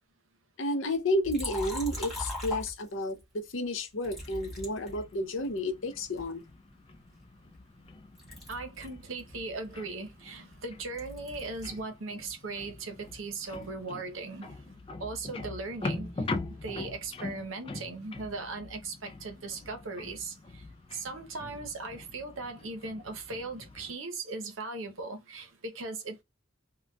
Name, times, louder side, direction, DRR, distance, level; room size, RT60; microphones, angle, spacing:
voice 1, 0.6-6.4, left 1 dB, 75° left, 0.7 m, -31 dB
Liquid, 1.2-3.2 4.0-5.6 6.2-7.9 8.2-11.9 12.1-13.8, left 1 dB, ahead, 1.9 m, -41 dB
sound 1, 4.2-24.0, left 3 dB, 30° left, 0.4 m, -43 dB
voice 2, 8.5-14.6 15.0-20.6 20.9-26.2, right 3 dB, 85° right, 0.7 m, -38 dB
3.9 x 2.2 x 2.2 m
head